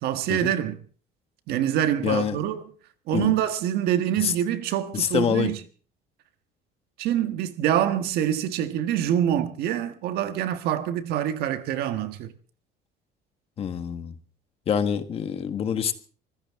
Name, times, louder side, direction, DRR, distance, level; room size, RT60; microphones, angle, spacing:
voice 1, 0.0-0.8 1.5-2.6 3.1-5.6 7.0-12.3, right 11 dB, 65° right, 1.5 m, -25 dB
voice 2, 2.0-2.4 3.1-3.3 4.2-4.3 4.9-5.5 13.6-14.1 14.7-15.9, left 8 dB, 35° left, 1.5 m, -26 dB
25.0 x 15.5 x 3.6 m
cardioid pair, 165°, 17 cm